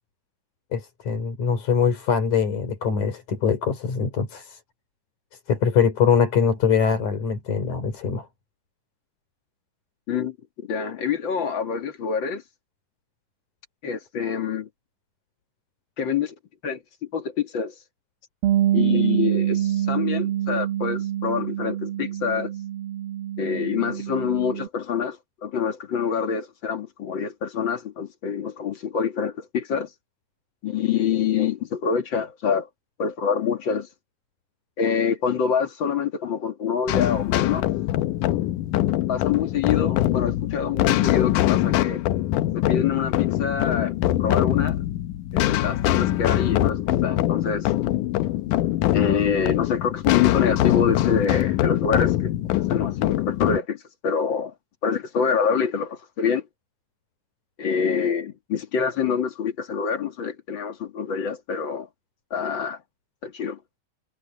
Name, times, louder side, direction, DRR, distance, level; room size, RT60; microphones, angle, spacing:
voice 1, 0.7-4.6 5.5-8.3, left 6 dB, 55° left, 5.0 m, -23 dB
voice 2, 10.1-12.4 13.8-14.7 16.0-16.3 16.6-16.8 17.1-17.7 18.7-22.5 23.4-29.9 30.6-32.7 33.0-33.9 34.8-37.7 39.1-42.0 42.5-44.8 45.3-47.7 48.9-52.3 52.7-54.5 54.8-56.5 57.6-61.9 62.3-62.8 63.2-63.6, left 6 dB, 40° left, 2.2 m, -26 dB
Bass guitar, 18.4-24.7, right 11 dB, 85° right, 3.1 m, -25 dB
sound 1, 36.9-53.6, left 14 dB, 75° left, 2.2 m, -23 dB
omnidirectional pair, 4.1 m